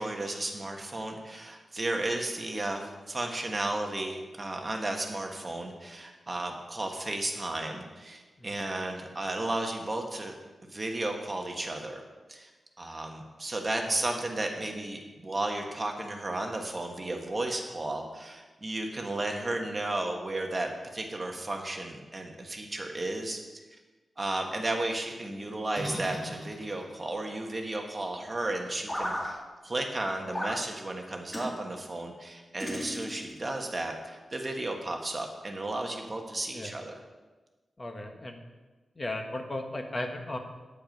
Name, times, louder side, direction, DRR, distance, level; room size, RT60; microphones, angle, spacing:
voice 1, 0.0-10.3 10.7-12.0 12.3-12.5 12.8-23.4 23.7-23.8 24.2-37.0, right 2 dB, 25° right, 2 dB, 1.3 m, -34 dB
sound 1, 25.7-26.9 28.9-29.3 30.3-30.6 31.3-31.5 32.6-33.4, equal, 10° left, 2.0 m, -35 dB
voice 2, 37.8-38.4 38.9-40.4, left 1 dB, 25° left, 4 dB, 1.2 m, -36 dB
9.3 x 8.2 x 5.2 m, 1.2 s
wide cardioid pair, 135°, 0 cm